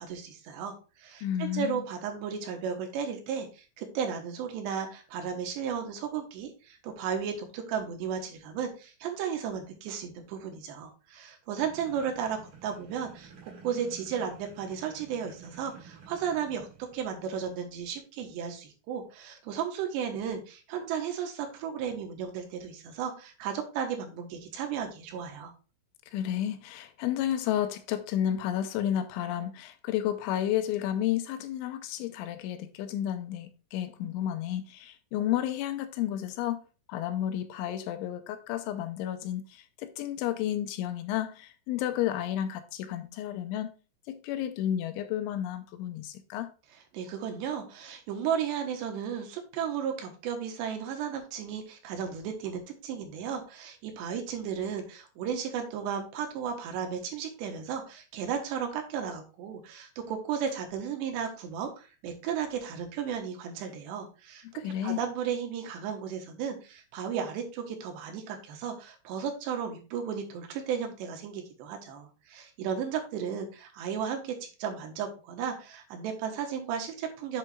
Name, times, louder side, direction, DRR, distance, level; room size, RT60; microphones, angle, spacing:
voice 1, 0.0-16.7 16.9-25.5 46.9-77.4, right 7 dB, 75° right, 3.2 m, -34 dB
voice 2, 1.2-1.9 26.1-36.6 36.9-43.7 44.1-46.5 64.5-65.0, left 11 dB, 90° left, 3.0 m, -31 dB
sound 1, 11.6-17.2, right 6 dB, 45° right, 3.9 m, -51 dB
7.8 x 7.5 x 2.4 m
omnidirectional pair, 5.4 m